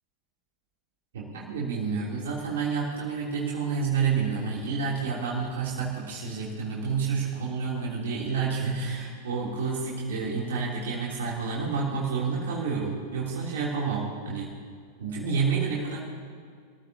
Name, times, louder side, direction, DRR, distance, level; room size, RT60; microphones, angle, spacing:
voice 1, 1.1-14.6 15.0-16.0, right 5 dB, 60° right, -5 dB, 3.1 m, -29 dB
26.0 x 14.5 x 2.9 m, 2.1 s
figure-of-eight pair, 90°, 0 cm